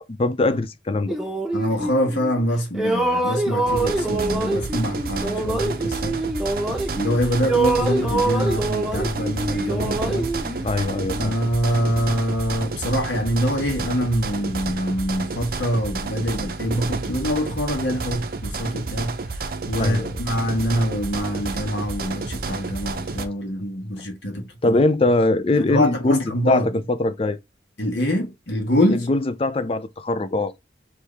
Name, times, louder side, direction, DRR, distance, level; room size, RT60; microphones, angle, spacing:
voice 1, 0.2-1.2 10.6-11.4 19.8-20.2 24.6-27.4 28.9-30.5, left 2 dB, 30° left, 0.4 m, -22 dB
sound 1, 1.1-2.4 2.7-7.1 7.4-11.2, right 2 dB, 5° right, 0.9 m, -25 dB
voice 2, 1.5-6.2 7.0-10.3 11.1-19.2 19.7-24.8 25.6-26.7 27.8-29.1, equal, 75° left, 1.4 m, -25 dB
sound 2, 3.7-23.3, right 3 dB, 50° right, 0.6 m, -30 dB
4.6 x 2.9 x 3.4 m
head